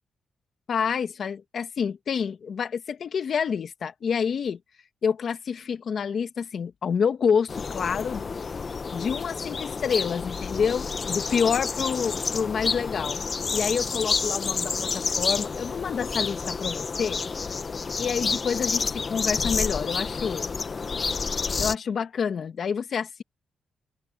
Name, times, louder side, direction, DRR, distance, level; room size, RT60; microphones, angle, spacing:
voice 1, 0.7-4.6 5.0-8.3 8.9-13.2 13.5-17.2 18.0-20.5 21.6-23.2, left 6 dB, 50° left, 1.7 m, -28 dB
sound 1, 7.5-21.8, left 5 dB, 35° left, 0.9 m, -29 dB
wide cardioid pair, 140°, 0 cm